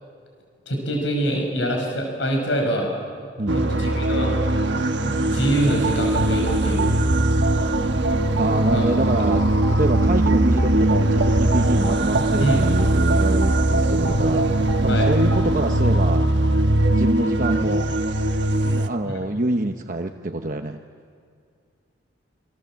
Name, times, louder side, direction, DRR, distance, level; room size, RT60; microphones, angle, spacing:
voice 1, 0.7-2.9 3.5-4.3 5.0-6.9 8.7-8.9 9.2-9.3 12.4-12.6 14.9-15.1 19.0-19.1, right 1 dB, 75° left, 2 dB, 5.9 m, -24 dB
voice 2, 3.4-3.8 8.4-9.4 9.7-16.2 17.0-17.9 18.6-20.8, right 2 dB, 45° right, 4 dB, 1.0 m, -26 dB
sound 1, 3.5-18.9, right 1 dB, 65° right, 1.3 m, -21 dB
sound 2, 5.6-15.6, right 2 dB, 85° right, 1.4 m, -27 dB
27.5 x 26.0 x 7.6 m, 2.2 s
head